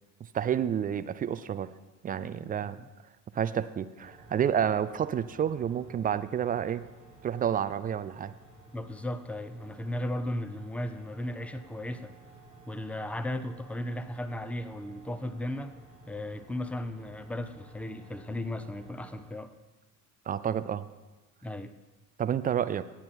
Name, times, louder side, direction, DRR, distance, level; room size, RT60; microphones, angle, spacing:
voice 1, 0.2-1.7 2.0-2.8 3.3-6.9 7.2-8.3 20.3-20.9 22.2-22.8, right 9 dB, 20° right, 14 dB, 0.3 m, -29 dB
sound 1, 4.0-19.2, right 2 dB, 85° left, 4.1 m, -54 dB
voice 2, 8.7-12.1 12.7-15.7 16.1-19.5 21.4-21.7, left 1 dB, 5° left, 11 dB, 0.7 m, -36 dB
18.0 x 8.7 x 4.3 m, 1.2 s
hypercardioid pair, 60°, 48 cm